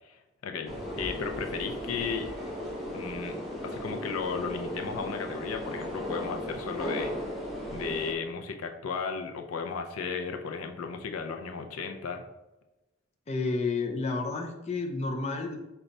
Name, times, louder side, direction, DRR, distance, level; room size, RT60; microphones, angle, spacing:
voice 1, 0.4-2.3 2.9-3.4 3.6-7.1 7.7-12.2, left 5 dB, 90° left, 5 dB, 0.5 m, -34 dB
sound 1, 0.7-8.1, left 1 dB, ahead, 0.9 m, -36 dB
voice 2, 13.3-15.6, left 3 dB, 30° left, 2 dB, 0.5 m, -30 dB
5.2 x 2.3 x 4.0 m, 1.0 s
head